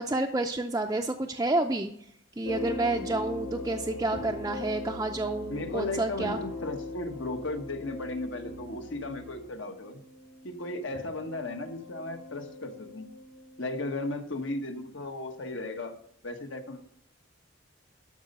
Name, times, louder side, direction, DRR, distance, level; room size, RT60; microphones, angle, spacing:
voice 1, 0.0-1.9 2.4-6.4, right 2 dB, 15° right, 2 dB, 0.5 m, -29 dB
sound 1, 2.4-14.2 15.0-15.3, left 2 dB, 85° left, 2.5 m, -41 dB
voice 2, 5.5-10.0 10.4-13.1 13.6-15.9 16.2-16.8, left 2 dB, 65° left, 5 dB, 1.4 m, -35 dB
12.5 x 5.4 x 6.7 m, 0.70 s
head